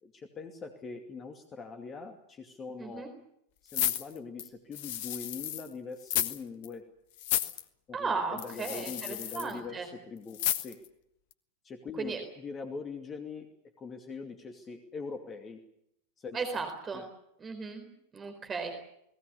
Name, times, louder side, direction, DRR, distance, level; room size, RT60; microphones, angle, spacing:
voice 1, 0.0-3.1 3.6-6.8 7.9-10.8 11.6-13.5 13.8-15.6 16.2-16.6 16.9-17.1, left 5 dB, 25° left, 5 dB, 2.5 m, -42 dB
sound 1, 3.7-5.7 6.0-6.4 6.6-6.7 7.2-7.6 8.4-9.5 10.3-10.9 11.3-11.4, left 12 dB, 50° left, 1.4 m, -32 dB
voice 2, 7.9-9.9 12.0-12.2 16.3-17.0 17.4-18.7, right 4 dB, 20° right, 5 dB, 4.1 m, -36 dB
29.0 x 19.5 x 7.0 m, 0.78 s
figure-of-eight pair, 90°, 0 cm